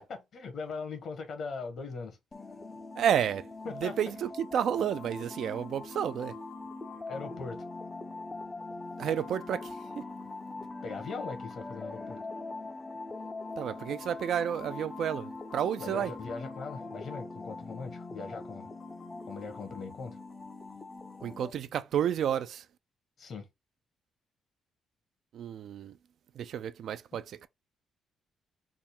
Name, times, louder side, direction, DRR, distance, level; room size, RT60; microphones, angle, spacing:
voice 1, 0.1-2.2 3.6-4.0 7.1-7.6 10.8-12.2 15.8-18.7 19.2-20.2 23.2-23.5, left 4 dB, 60° left, 1.1 m, -40 dB
sound 1, 2.3-21.5, left 3 dB, 25° left, 0.5 m, -42 dB
voice 2, 3.0-3.5 3.8-6.3 9.0-10.0 13.6-16.1 21.2-22.6 25.3-25.9 26.4-27.5, right 9 dB, 70° right, 0.4 m, -31 dB
3.6 x 2.0 x 4.2 m
cardioid pair, 90°, 0 cm